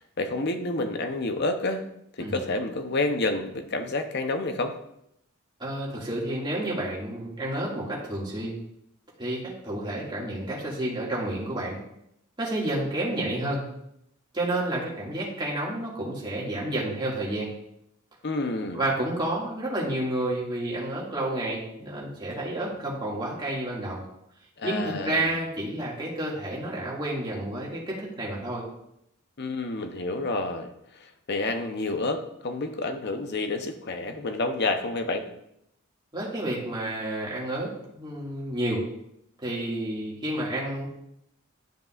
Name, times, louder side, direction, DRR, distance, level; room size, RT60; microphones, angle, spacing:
voice 1, 0.0-1.8 2.2-4.8 18.2-18.8 24.6-25.3 29.4-35.3, left 2 dB, 50° left, 7 dB, 0.8 m, -29 dB
voice 2, 5.6-8.6 9.2-11.8 12.4-13.6 14.3-17.5 18.7-24.0 24.6-28.6 36.1-38.8 39.4-40.9, right 1 dB, 20° right, -5 dB, 2.1 m, -30 dB
12.0 x 5.3 x 2.5 m, 0.77 s
head